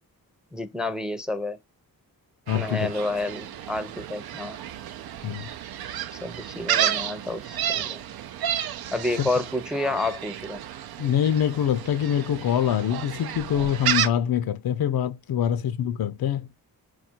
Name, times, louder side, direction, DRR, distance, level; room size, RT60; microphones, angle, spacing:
voice 1, 0.5-1.6 2.5-4.6 6.2-8.0 8.9-10.6, left 2 dB, ahead, 0.5 m, -29 dB
voice 2, 2.5-2.9 5.2-5.5 9.2-9.3 11.0-16.5, left 9 dB, 80° left, 0.6 m, -24 dB
Gull seagull, 2.5-14.1, right 10 dB, 85° right, 0.5 m, -31 dB
4.9 x 2.4 x 4.3 m
wide cardioid pair, 90°, 36 cm